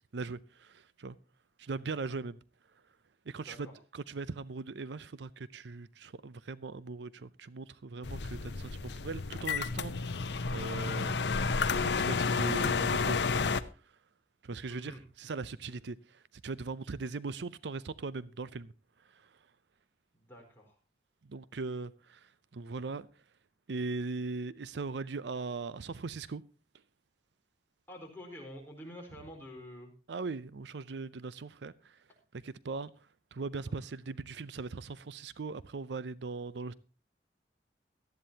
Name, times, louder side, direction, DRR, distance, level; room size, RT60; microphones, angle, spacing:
voice 1, 0.1-1.2 1.6-2.4 3.3-10.1 10.5-11.1 11.8-13.4 14.4-18.7 21.3-23.1 23.7-26.4 30.1-32.0 32.4-32.9 33.3-36.7, right 3 dB, 70° right, 0.5 m, -39 dB
sound 1, 8.0-13.6, left 4 dB, 70° left, 0.8 m, -31 dB
voice 2, 14.7-15.0 15.7-15.8 20.1-20.8 27.9-29.9 33.7-33.8, equal, 10° left, 4.4 m, -48 dB
18.0 x 13.0 x 2.8 m
head